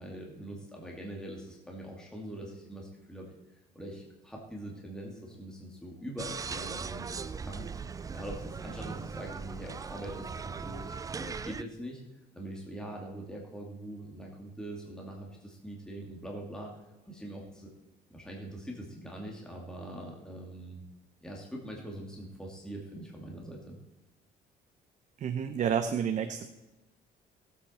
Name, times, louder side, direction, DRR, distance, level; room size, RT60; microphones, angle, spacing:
voice 1, 0.0-3.3 3.7-12.0 12.3-17.7 18.1-20.8 21.2-23.8, right 1 dB, 5° left, -1 dB, 2.5 m, -43 dB
sound 1, 6.2-11.6, right 5 dB, 20° right, 0.4 m, -39 dB
voice 2, 25.2-26.5, right 8 dB, 45° right, 8 dB, 0.8 m, -30 dB
17.5 x 8.3 x 4.4 m, 1.1 s
cardioid pair, 110°, 17 cm